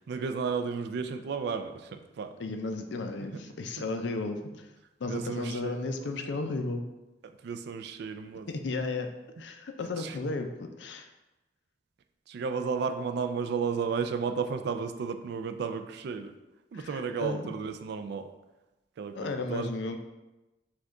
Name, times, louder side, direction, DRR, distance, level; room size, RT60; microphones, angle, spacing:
voice 1, 0.1-2.3 5.0-6.1 7.2-8.5 10.0-10.2 12.3-16.3 16.7-18.3 19.0-19.7, right 5 dB, 60° right, 8 dB, 0.3 m, -33 dB
voice 2, 2.4-4.7 5.0-6.8 8.5-9.1 9.4-11.1 16.7-17.5 19.1-20.0, left 3 dB, 70° left, 6 dB, 0.4 m, -34 dB
5.0 x 2.3 x 3.6 m, 1.0 s
head